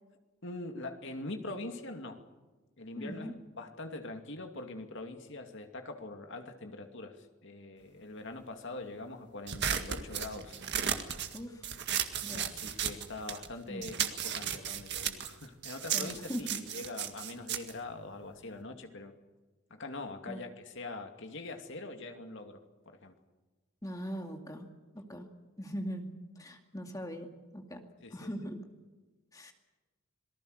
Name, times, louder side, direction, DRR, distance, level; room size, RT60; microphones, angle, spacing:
voice 1, 0.4-2.2 2.8-10.6 12.3-19.1 19.7-23.1 26.9-27.0 28.0-28.3, left 2 dB, 55° left, 5 dB, 2.5 m, -43 dB
voice 2, 3.0-3.3 11.3-11.7 12.2-12.4 13.7-13.9 15.9-16.6 20.3-20.4 23.8-24.7 24.9-25.3 25.6-27.8 28.1-28.6 29.3-29.5, equal, 15° left, 4 dB, 2.2 m, -40 dB
sound 1, 9.5-13.5 13.8-18.6, right 8 dB, 50° right, 1.9 m, -35 dB
27.0 x 19.0 x 6.7 m, 1.2 s
head